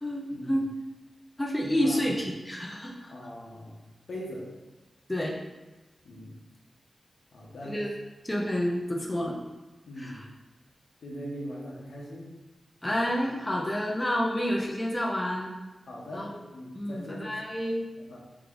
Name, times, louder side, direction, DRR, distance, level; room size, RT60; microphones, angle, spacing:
voice 1, 0.0-0.7 1.4-3.1 5.1-5.4 7.6-7.9 8.2-9.4 10.0-10.3 12.8-15.5 16.1-16.3 16.7-17.9, equal, 15° left, -1 dB, 0.4 m, -29 dB
voice 2, 1.7-2.1 3.1-4.5 6.0-6.4 7.3-7.8 9.9-10.2 11.0-12.3 15.9-17.3 18.0-18.2, equal, 80° left, -3 dB, 0.9 m, -41 dB
3.6 x 3.1 x 3.7 m, 1.1 s
wide cardioid pair, 150°, 0 cm